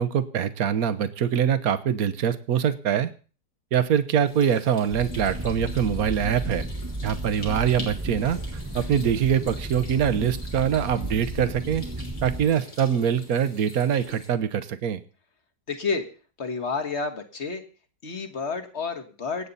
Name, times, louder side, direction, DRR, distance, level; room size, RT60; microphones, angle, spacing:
voice 1, 0.0-3.1 3.7-6.7 7.0-8.4 8.7-11.8 12.2-15.0, right 8 dB, 65° right, 13 dB, 1.4 m, -24 dB
sound 1, 4.3-14.3, left 2 dB, 85° left, 4.3 m, -45 dB
sound 2, 4.9-12.5, right 1 dB, 15° right, 1.3 m, -33 dB
voice 2, 15.7-16.1 16.4-17.6 18.0-19.5, left 4 dB, 45° left, 8 dB, 1.7 m, -30 dB
25.5 x 8.6 x 4.1 m, 0.38 s
omnidirectional pair, 1.7 m